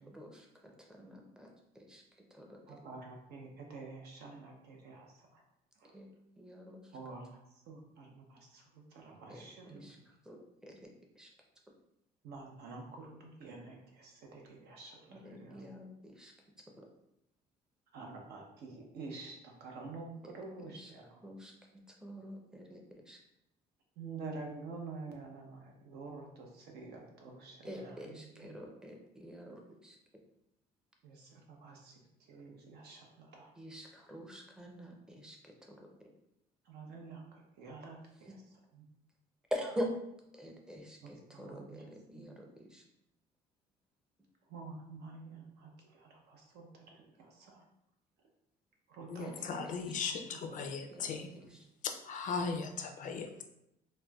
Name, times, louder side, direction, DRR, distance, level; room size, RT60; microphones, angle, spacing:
voice 1, 0.0-2.0 2.3-2.8 5.9-6.1 6.4-6.9 9.3-10.0 10.3-10.9 11.2-11.3 15.1-16.3 16.8-16.9 20.2-20.3 20.6-20.9 21.2-22.8 23.1-23.2 27.6-30.0 33.6-35.8 38.3-38.4 39.5-39.9 40.3-42.8 49.2-50.1 50.5-50.7 50.9-51.7, equal, 5° right, 1 dB, 0.5 m, -45 dB
voice 2, 2.7-5.4 5.8-5.9 6.9-7.4 7.7-9.8 12.2-15.6 17.9-21.2 24.0-28.5 31.0-33.5 36.7-38.4 38.7-38.8 41.0-41.9 42.1-42.3 44.5-47.6 48.9-50.6 51.1-51.6, right 3 dB, 75° right, 1 dB, 0.7 m, -49 dB
voice 3, 49.1-51.3 51.8-53.4, left 5 dB, 50° left, 4 dB, 0.4 m, -38 dB
4.2 x 2.2 x 2.3 m, 0.82 s
cardioid pair, 110°, 17 cm